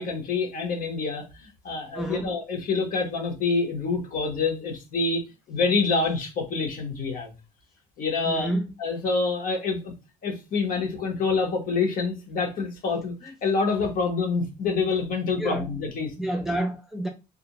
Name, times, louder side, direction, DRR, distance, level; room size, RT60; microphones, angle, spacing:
voice 1, 0.0-7.3 8.0-8.5 8.8-9.9 10.2-16.1, left 4 dB, 55° left, 1.0 m, -27 dB
voice 2, 1.9-2.3 8.3-8.6 15.4-15.6 16.2-17.1, right 1 dB, ahead, 0.4 m, -28 dB
2.4 x 2.1 x 2.8 m
cardioid pair, 110°, 17 cm